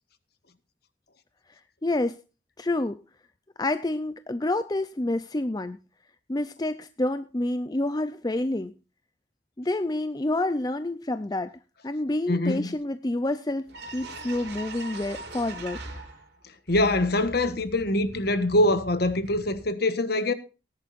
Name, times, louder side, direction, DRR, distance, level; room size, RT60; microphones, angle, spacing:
voice 1, 1.8-2.2 2.6-3.0 3.6-5.8 6.3-8.7 9.6-15.8, left 2 dB, 20° left, 0.5 m, -28 dB
voice 2, 12.3-12.7 16.7-20.3, left 1 dB, 55° left, 1.3 m, -24 dB
sound 1, 13.3-13.4 13.7-16.4 16.7-19.7, right 2 dB, 55° right, 3.5 m, -41 dB
18.5 x 11.0 x 2.5 m
head